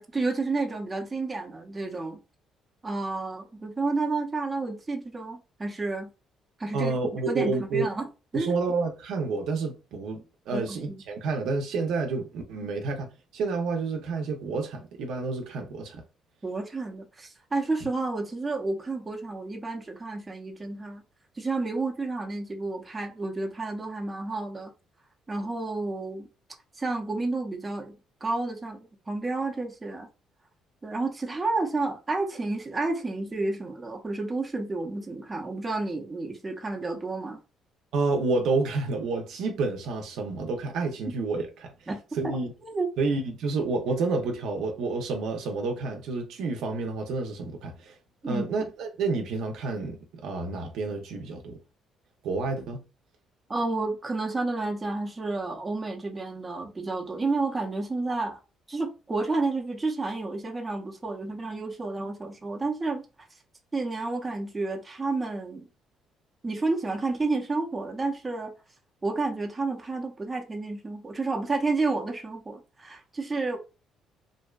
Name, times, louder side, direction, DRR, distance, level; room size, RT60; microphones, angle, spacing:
voice 1, 0.0-2.2 2.8-6.1 6.6-6.9 7.3-8.1 8.3-8.5 10.5-11.0 12.6-12.7 16.4-21.0 21.4-24.7 25.3-26.3 26.8-28.0 28.2-30.1 30.8-37.4 41.9-42.9 48.2-48.4 53.5-58.4 58.7-63.0 63.7-65.7 66.4-68.5 69.0-73.6, right 3 dB, 20° right, 0.6 m, -30 dB
voice 2, 6.7-7.9 8.3-16.0 17.8-17.9 37.9-42.5 43.0-47.9 48.3-51.6 52.2-52.8, right 3 dB, 75° right, 0.5 m, -29 dB
2.6 x 2.1 x 2.3 m
cardioid pair, 95°, 0 cm